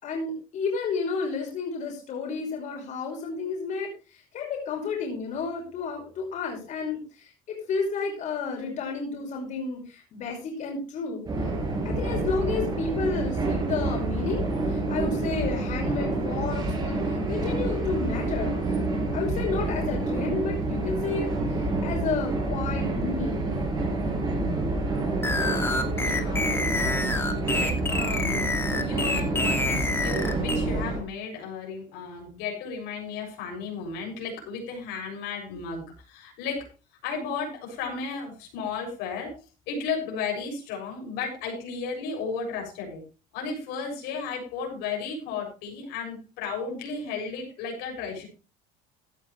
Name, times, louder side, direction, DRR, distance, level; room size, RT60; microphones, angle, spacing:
voice 1, 0.0-11.2 11.8-18.6 19.1-23.5, left 4 dB, 45° left, 0 dB, 5.5 m, -31 dB
sound 1, 11.3-31.0, right 2 dB, 25° right, 5.7 m, -28 dB
sound 2, 25.2-30.6, left 2 dB, 15° left, 2.3 m, -28 dB
voice 2, 25.9-26.5 27.0-36.7 37.0-39.4 39.7-43.0 43.3-48.3, left 5 dB, 75° left, 1 dB, 7.0 m, -34 dB
16.0 x 11.5 x 3.2 m, 0.32 s
cardioid pair, 140°, 17 cm